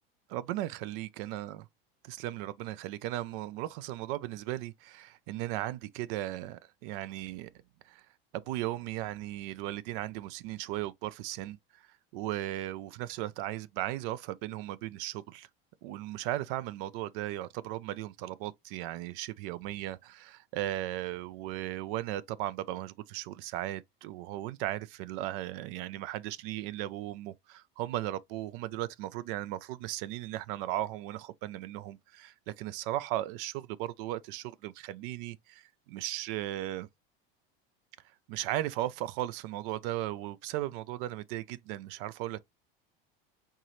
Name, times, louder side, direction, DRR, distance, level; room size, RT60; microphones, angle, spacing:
voice 1, 0.3-1.7 2.0-7.5 7.9-8.1 8.3-11.6 12.1-15.5 15.8-36.9 38.3-42.4, right 14 dB, 65° right, 0.5 m, -36 dB
4.6 x 2.8 x 3.0 m
supercardioid pair, 115°, 29 cm